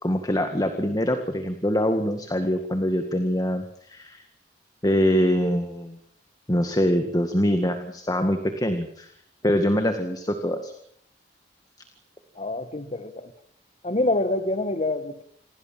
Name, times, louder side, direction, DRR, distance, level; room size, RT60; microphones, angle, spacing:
voice 1, 0.0-4.2 4.8-6.0 6.5-9.1 9.4-10.7, equal, 20° left, 7 dB, 1.9 m, -24 dB
voice 2, 12.4-13.3 13.8-15.2, left 2 dB, 35° left, 11 dB, 1.9 m, -26 dB
28.5 x 21.0 x 7.6 m, 0.68 s
head